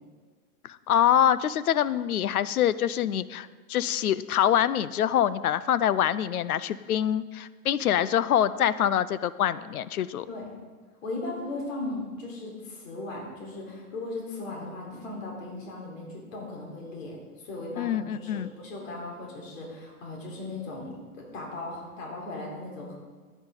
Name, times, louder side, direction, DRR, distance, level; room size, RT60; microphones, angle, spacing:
voice 1, 0.6-10.3 17.8-18.5, left 10 dB, 75° left, 16 dB, 0.7 m, -25 dB
voice 2, 11.0-22.9, left 2 dB, 60° left, -2 dB, 4.1 m, -37 dB
15.0 x 9.5 x 3.9 m, 1.5 s
hypercardioid pair, 115°, 44 cm